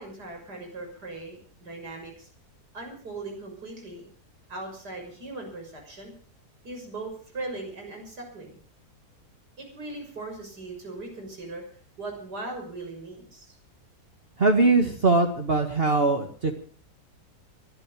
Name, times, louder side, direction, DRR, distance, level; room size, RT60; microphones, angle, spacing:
voice 1, 0.0-2.3 2.7-4.1 4.5-6.1 6.6-8.6 9.6-11.6 12.0-13.6, right 2 dB, 85° right, 2 dB, 6.8 m, -39 dB
voice 2, 14.4-16.6, right 3 dB, 40° right, 4 dB, 1.8 m, -21 dB
22.5 x 12.0 x 5.0 m, 0.43 s
omnidirectional pair, 1.7 m